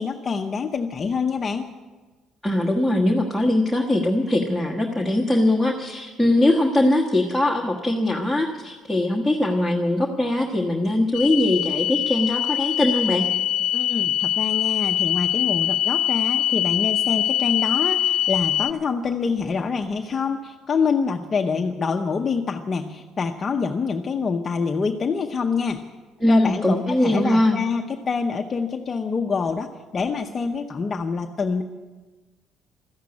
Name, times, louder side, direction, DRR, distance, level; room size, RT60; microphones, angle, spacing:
voice 1, 0.0-1.7 13.7-25.8 26.3-31.6, left 5 dB, 30° left, 4 dB, 0.7 m, -26 dB
voice 2, 2.4-13.3 26.2-27.6, left 1 dB, ahead, 2 dB, 1.3 m, -21 dB
sound 1, 11.1-18.7, left 11 dB, 70° left, 0.6 m, -23 dB
13.5 x 10.0 x 9.7 m, 1.3 s
cardioid pair, 145°, 0 cm